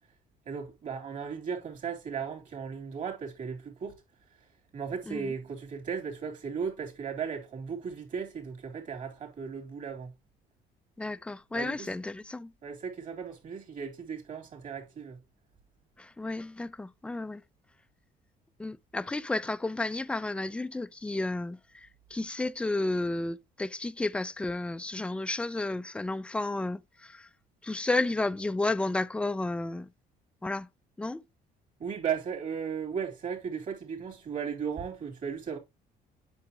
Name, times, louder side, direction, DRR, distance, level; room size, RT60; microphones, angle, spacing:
voice 1, 0.4-4.0 4.7-10.1 11.5-11.9 12.6-15.2 31.8-35.6, right 6 dB, 50° right, 3.4 m, -36 dB
voice 2, 11.0-12.5 16.0-17.4 18.6-27.3 27.6-29.9 30.4-30.7 31.0-31.2, left 2 dB, 5° left, 0.4 m, -32 dB
8.7 x 5.6 x 2.9 m
cardioid pair, 110°, 17 cm